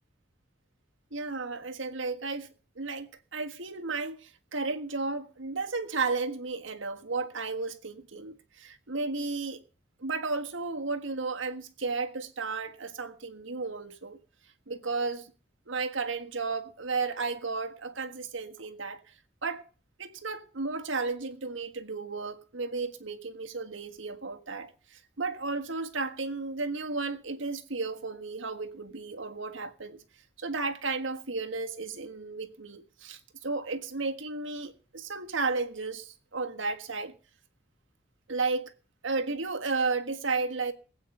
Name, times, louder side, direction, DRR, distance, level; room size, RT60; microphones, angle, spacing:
voice 1, 1.1-9.6 10.0-14.2 14.7-15.3 15.7-19.0 19.4-19.6 20.0-30.0 30.4-37.1 38.3-38.7 39.0-40.7, right 4 dB, 80° right, 1.6 m, -33 dB
20.0 x 8.6 x 5.5 m
head